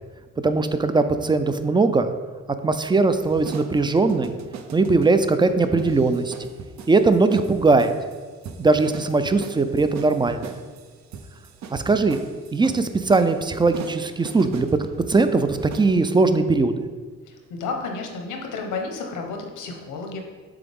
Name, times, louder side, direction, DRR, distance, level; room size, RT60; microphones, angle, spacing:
voice 1, 0.4-2.1 2.6-4.4 4.7-6.3 6.9-7.9 8.6-10.5 11.7-12.2 12.5-16.8, right 3 dB, 15° right, 10 dB, 0.3 m, -20 dB
sound 1, 3.2-15.9, right 6 dB, 65° right, 0.6 m, -40 dB
voice 2, 17.3-20.2, left 4 dB, 80° left, 2 dB, 1.1 m, -31 dB
7.0 x 3.8 x 3.5 m, 1.5 s
cardioid pair, 90°, 30 cm